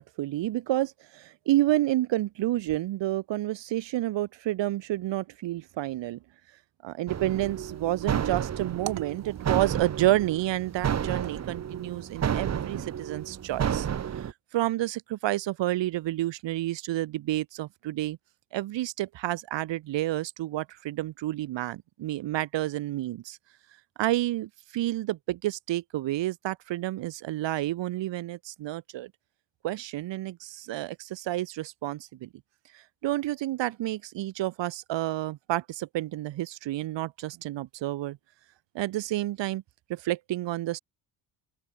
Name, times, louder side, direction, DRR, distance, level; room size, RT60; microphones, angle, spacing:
voice 1, 0.0-6.2 6.8-13.9 14.2-18.2 18.5-23.4 24.0-29.1 29.6-32.3 33.0-38.2 38.8-39.6 39.9-40.8, right 15 dB, 65° right, 5.3 m, -30 dB
sound 1, 7.1-14.3, right 8 dB, 35° right, 2.9 m, -31 dB
open air
cardioid pair, 170°, 48 cm